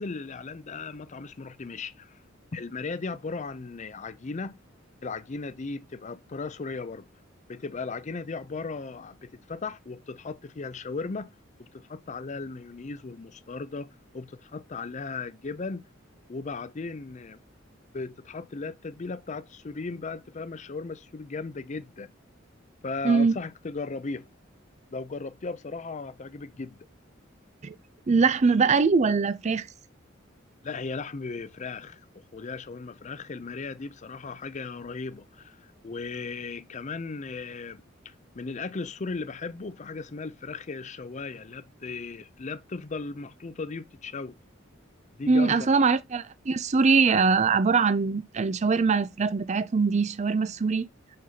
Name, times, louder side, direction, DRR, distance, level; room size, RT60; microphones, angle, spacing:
voice 1, 0.0-2.2 2.5-4.6 5.0-7.1 7.5-11.3 11.6-15.9 16.3-17.4 17.9-22.1 22.8-24.3 24.9-26.9 30.6-35.6 35.8-44.4 45.2-45.8, left 4 dB, 35° left, 0.5 m, -36 dB
voice 2, 23.0-23.4 27.6-27.7 28.1-29.7 45.3-50.9, right 4 dB, 35° right, 0.4 m, -22 dB
6.5 x 4.2 x 3.8 m
head